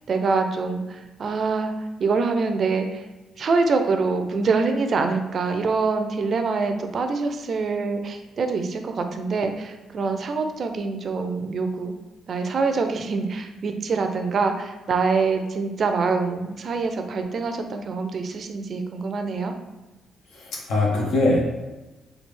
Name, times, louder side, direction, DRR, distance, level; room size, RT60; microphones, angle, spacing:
voice 1, 0.1-3.1 3.4-11.9 12.3-19.5, right 4 dB, 50° right, 6 dB, 0.4 m, -25 dB
voice 2, 20.3-21.4, left 2 dB, 80° left, -2 dB, 0.7 m, -22 dB
3.3 x 2.3 x 3.2 m, 1.1 s
cardioid pair, 90°, 0 cm